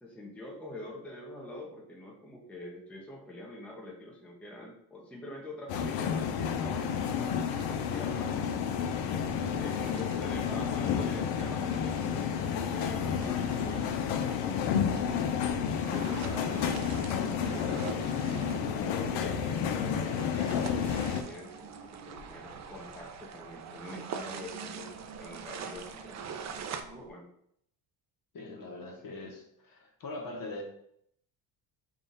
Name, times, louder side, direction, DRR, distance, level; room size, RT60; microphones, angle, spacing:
voice 1, 0.0-7.4 7.8-9.3 9.6-15.4 15.8-17.1 17.4-18.5 18.8-24.9 25.2-26.6 26.9-27.3, left 1 dB, 5° left, -2 dB, 0.6 m, -45 dB
sound 1, 5.7-21.2, left 7 dB, 75° left, 0.6 m, -31 dB
sound 2, 6.9-26.8, right 7 dB, 40° right, 0.4 m, -47 dB
voice 2, 9.3-9.6 12.8-13.0 19.0-19.2 28.3-30.6, left 2 dB, 45° left, 2 dB, 0.9 m, -42 dB
sound 3, 14.7-27.1, right 4 dB, 80° right, 0.7 m, -49 dB
3.7 x 2.4 x 3.9 m, 0.70 s
cardioid pair, 115°, 46 cm